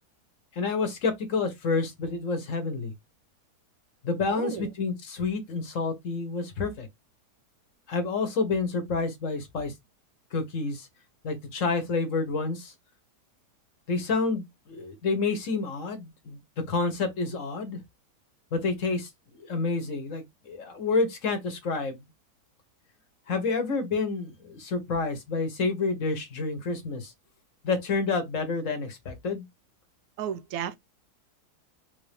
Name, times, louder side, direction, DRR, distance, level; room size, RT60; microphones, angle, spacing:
voice 1, 0.5-2.9 4.0-6.9 7.9-9.7 10.3-10.9 11.2-12.7 13.9-17.8 18.5-19.1 19.4-22.1 23.3-27.1 27.6-29.4, left 4 dB, 55° left, 1.3 m, -29 dB
voice 2, 4.3-4.7 30.2-30.8, right 9 dB, 70° right, 1.0 m, -33 dB
3.8 x 2.6 x 3.3 m
omnidirectional pair, 1.7 m